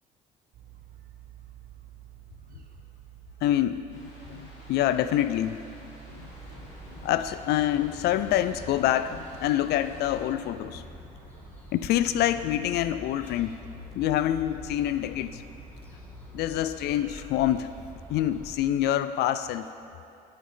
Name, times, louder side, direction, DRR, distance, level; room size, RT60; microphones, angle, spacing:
sound 1, 0.5-18.9, right 7 dB, 60° right, 1.1 m, -51 dB
voice 1, 3.4-5.6 6.1-6.3 6.9-10.8 11.7-13.5 13.9-15.4 16.3-17.7 18.1-19.7, left 12 dB, 75° left, 12 dB, 0.4 m, -26 dB
sound 2, 3.9-10.2, left 1 dB, 45° left, 2.9 m, -52 dB
sound 3, 6.2-18.5, left 3 dB, 10° left, 2.6 m, -46 dB
12.0 x 9.6 x 3.8 m, 2.5 s
cardioid pair, 110°, 17 cm